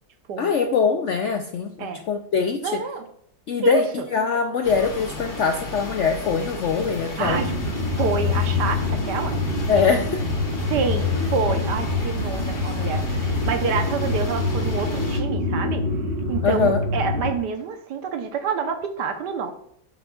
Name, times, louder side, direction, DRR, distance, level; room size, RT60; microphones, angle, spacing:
voice 1, 0.4-2.8 3.5-7.4 9.7-10.2 16.4-16.8, left 5 dB, 70° left, 5 dB, 0.7 m, -23 dB
voice 2, 2.6-3.0 3.6-3.8 7.2-7.5 8.0-9.4 10.6-15.8 16.3-19.5, right 5 dB, 75° right, 6 dB, 1.5 m, -27 dB
sound 1, 4.6-15.2, left 2 dB, 40° left, 1.8 m, -34 dB
sound 2, 7.2-17.3, left 3 dB, 35° right, 1.7 m, -25 dB
8.8 x 7.0 x 2.4 m, 0.68 s
omnidirectional pair, 1.9 m